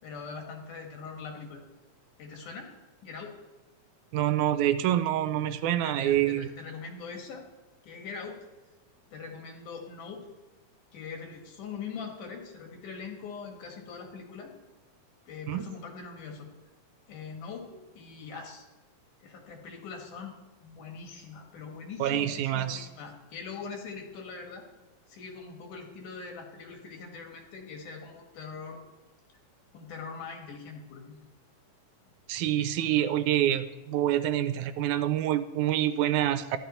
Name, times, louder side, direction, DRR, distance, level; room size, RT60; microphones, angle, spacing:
voice 1, 0.0-1.6 2.2-2.7 3.0-3.4 5.8-7.4 7.8-8.4 9.1-10.3 10.9-14.5 15.3-16.5 17.1-18.7 19.2-20.3 20.6-24.7 25.1-28.8 29.7-31.3, left 5 dB, 80° left, 2 dB, 3.5 m, -42 dB
voice 2, 4.1-6.5 15.5-15.6 22.0-22.9 32.3-36.6, right 12 dB, 80° right, 12 dB, 2.0 m, -26 dB
14.0 x 11.5 x 4.4 m, 1.1 s
omnidirectional pair, 3.5 m